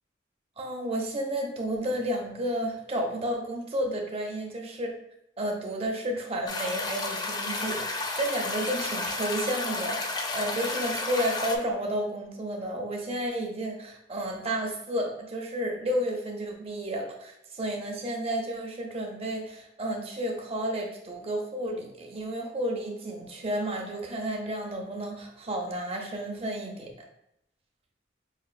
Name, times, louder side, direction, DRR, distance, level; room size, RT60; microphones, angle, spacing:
voice 1, 0.6-4.9 5.4-26.9, right 1 dB, 35° right, 0 dB, 0.7 m, -31 dB
sound 1, 6.5-11.6, left 3 dB, 20° left, 0.3 m, -32 dB
5.0 x 2.4 x 2.5 m, 0.81 s
head